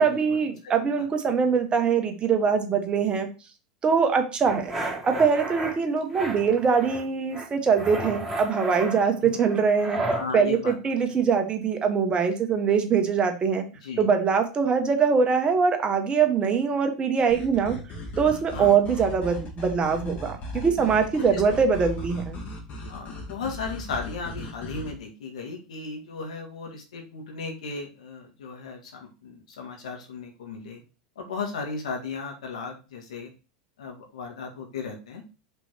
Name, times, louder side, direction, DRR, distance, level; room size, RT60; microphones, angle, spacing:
voice 1, 0.0-3.3 3.8-4.7 5.0-10.0 10.3-13.6 14.0-17.8 18.2-22.4, right 6 dB, 30° right, 6 dB, 1.3 m, -23 dB
sound 1, 4.4-5.7 6.1-7.0 7.3-10.3, right 2 dB, 10° right, 2.5 m, -32 dB
voice 2, 10.1-10.8 13.8-14.1 18.5-18.7 20.6-20.8 21.2-21.4 22.9-30.8 31.2-33.3 33.8-35.2, left 4 dB, 75° left, 2 dB, 2.0 m, -35 dB
sound 2, 17.3-24.9, left 1 dB, 40° left, 2.3 m, -37 dB
5.4 x 4.3 x 4.5 m, 0.32 s
hypercardioid pair, 95°, 4 cm